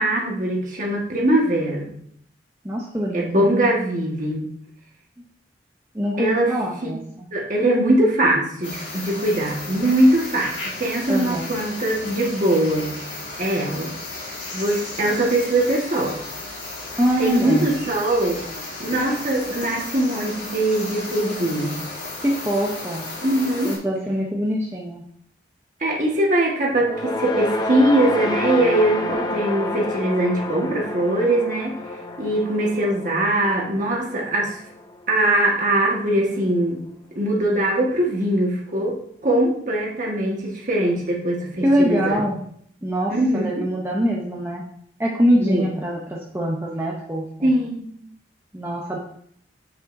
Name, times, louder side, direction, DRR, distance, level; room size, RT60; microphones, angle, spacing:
voice 1, 0.0-1.9 3.1-4.5 6.2-6.5 7.3-13.0 13.4-13.9 14.5-16.1 17.2-18.4 18.8-21.8 23.2-23.8 25.8-31.7 32.2-34.6 35.1-36.8 37.1-39.0 39.2-42.2 43.1-43.6 45.4-45.7 47.4-47.9, right 1 dB, 40° right, -1 dB, 1.5 m, -21 dB
voice 2, 2.6-3.7 5.9-7.3 11.1-11.6 17.0-17.7 22.2-23.1 23.6-25.0 41.6-42.4 42.8-44.6 45.0-47.5 48.5-49.0, equal, 15° right, -3 dB, 0.7 m, -23 dB
sound 1, 8.6-23.8, left 2 dB, 80° left, 2.8 m, -34 dB
sound 2, 26.8-35.2, left 2 dB, 20° left, 0.5 m, -29 dB
7.6 x 7.3 x 2.6 m, 0.65 s
head